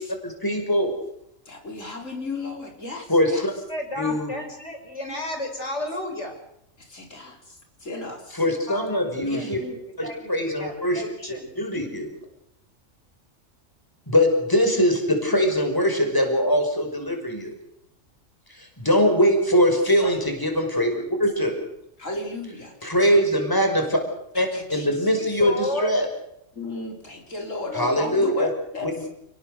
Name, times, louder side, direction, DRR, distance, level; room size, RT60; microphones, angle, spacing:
voice 1, 0.2-0.9 3.1-3.5 4.0-4.3 8.3-9.6 10.0-11.0 11.6-12.1 14.1-17.5 18.5-20.9 21.2-21.5 22.8-24.0 24.3-26.1 27.7-28.5 28.8-28.9, equal, 15° left, 4 dB, 5.6 m, -22 dB
voice 2, 1.5-3.4 6.9-7.4 7.8-8.4 9.2-9.8 20.0-20.1 22.0-22.7 24.5-24.9 26.6-28.9, left 2 dB, 90° left, 2 dB, 4.9 m, -34 dB
voice 3, 3.7-6.3 8.7-9.5 10.0-11.5 25.1-25.9, left 1 dB, 65° left, 4 dB, 6.3 m, -32 dB
30.0 x 19.5 x 6.8 m, 0.76 s
omnidirectional pair, 1.3 m